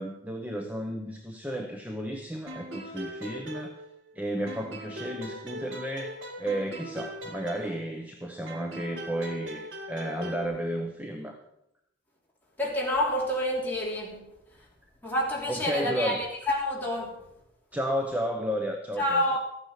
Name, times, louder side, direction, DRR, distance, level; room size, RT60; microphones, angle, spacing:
voice 1, 0.0-3.8 4.1-11.4 15.5-16.2 17.7-19.4, equal, 10° right, 0.8 m, -33 dB
sound 1, 2.5-4.2 4.5-8.1 8.5-10.5, equal, 70° right, 2.2 m, -41 dB
voice 2, 12.6-14.7 15.0-17.2 19.0-19.4, left 1 dB, 10° left, 3.1 m, -28 dB
13.5 x 9.2 x 5.7 m
head